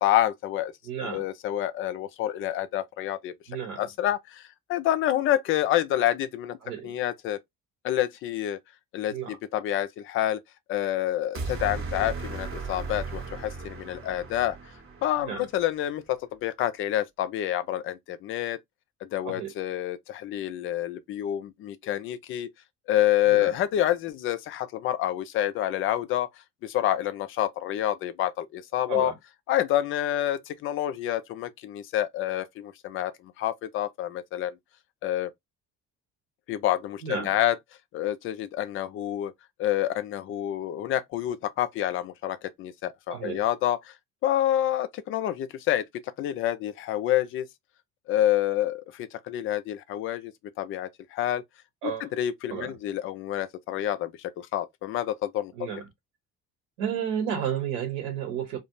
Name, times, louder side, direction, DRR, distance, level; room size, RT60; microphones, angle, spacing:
voice 1, 0.0-0.7 1.1-3.3 3.8-6.6 6.8-7.4 7.8-8.6 8.9-10.4 10.7-14.6 15.0-18.6 19.0-22.5 22.9-26.3 26.6-29.1 29.5-34.6 35.0-35.3 36.5-37.6 37.9-39.3 39.6-43.9 44.2-45.8 46.2-47.5 48.1-51.4 51.8-55.5, left 12 dB, 30° left, 0.4 m, -28 dB
voice 2, 0.8-1.2 3.5-3.8 6.6-7.0 9.1-9.4 15.2-15.5 19.2-19.5 23.3-23.5 28.9-29.1 37.0-37.3 43.1-43.4 51.8-52.1 52.5-52.7 55.5-55.8 56.8-58.6, right 8 dB, 65° right, 0.9 m, -32 dB
sound 1, 11.3-15.6, right 4 dB, 30° right, 0.8 m, -36 dB
2.4 x 2.0 x 2.8 m
figure-of-eight pair, 55°, 48 cm